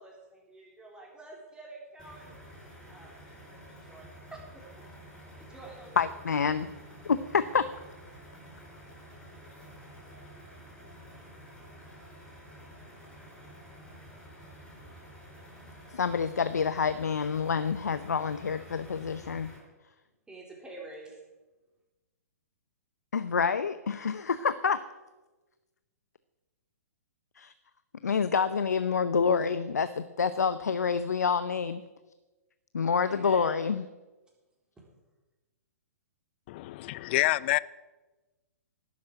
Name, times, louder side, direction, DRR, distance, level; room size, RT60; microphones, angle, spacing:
voice 1, 0.0-4.9 5.4-6.1 20.3-21.2 33.0-33.6 34.8-34.9, right 2 dB, 10° right, 3.9 m, -49 dB
sound 1, 2.0-19.6, equal, 10° left, 5.2 m, -50 dB
voice 2, 6.0-6.7 7.0-7.7 15.9-19.5 23.1-24.8 27.4-27.5 28.0-31.8 32.7-33.8, left 6 dB, 80° left, 0.7 m, -27 dB
voice 3, 36.5-37.6, left 18 dB, 40° left, 0.5 m, -27 dB
12.0 x 8.6 x 9.8 m
hypercardioid pair, 125°, 9 cm